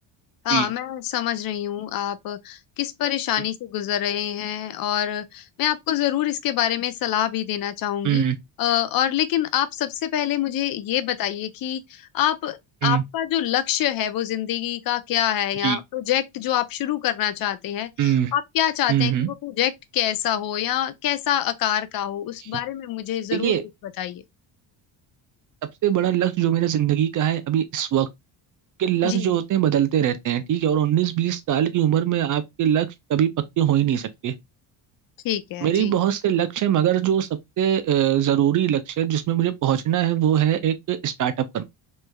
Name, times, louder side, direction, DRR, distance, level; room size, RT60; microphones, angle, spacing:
voice 1, 0.4-8.2 8.6-12.6 12.8-23.5 24.0-24.2 29.0-29.3 35.2-35.9, left 11 dB, 50° left, 0.5 m, -25 dB
voice 2, 8.0-8.4 12.8-13.0 15.6-15.8 18.0-18.3 18.9-19.3 23.3-23.6 25.8-28.1 28.8-33.3 33.6-34.3 35.6-37.3 37.6-41.6, right 10 dB, 45° right, 0.4 m, -22 dB
3.2 x 3.2 x 2.2 m
cardioid pair, 125°, 47 cm